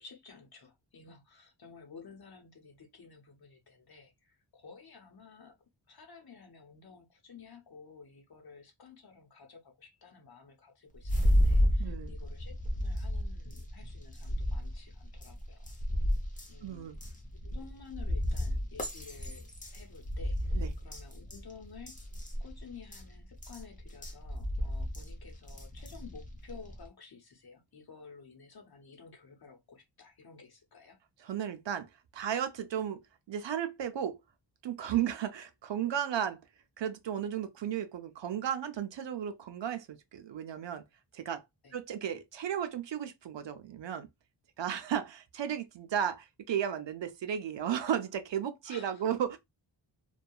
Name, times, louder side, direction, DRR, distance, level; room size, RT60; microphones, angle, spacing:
voice 1, 0.0-5.5 5.9-15.7 16.5-16.9 17.4-21.9 22.4-31.0 34.9-35.0 41.6-41.8 48.7-49.0, left 5 dB, 50° left, 0.9 m, -53 dB
sound 1, 11.0-26.9, equal, 15° left, 0.7 m, -33 dB
voice 2, 11.8-12.1 16.6-17.0 20.5-20.7 31.2-33.0 33.3-34.2 34.6-36.4 36.8-40.8 41.1-41.4 41.7-44.1 44.6-49.4, right 9 dB, 70° right, 0.6 m, -34 dB
2.7 x 2.3 x 2.3 m
wide cardioid pair, 90°, 46 cm